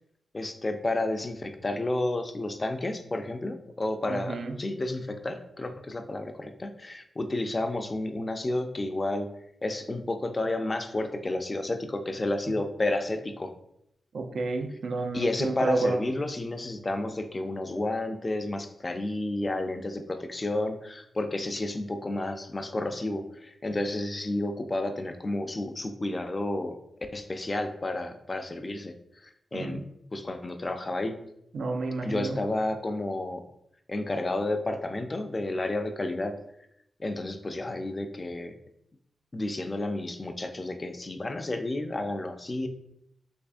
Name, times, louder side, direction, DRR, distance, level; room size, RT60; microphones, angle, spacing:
voice 1, 0.3-9.3 9.6-13.5 15.1-26.8 27.1-29.0 29.2-29.8 30.1-31.2 32.0-33.5 33.9-36.4 37.0-38.6 39.3-42.7, left 2 dB, 25° left, 7 dB, 0.3 m, -31 dB
voice 2, 4.1-4.6 14.1-16.0 29.5-29.8 31.5-32.4, right 3 dB, 75° right, 5 dB, 0.4 m, -30 dB
3.3 x 3.3 x 2.5 m, 0.76 s
wide cardioid pair, 115°, 0 cm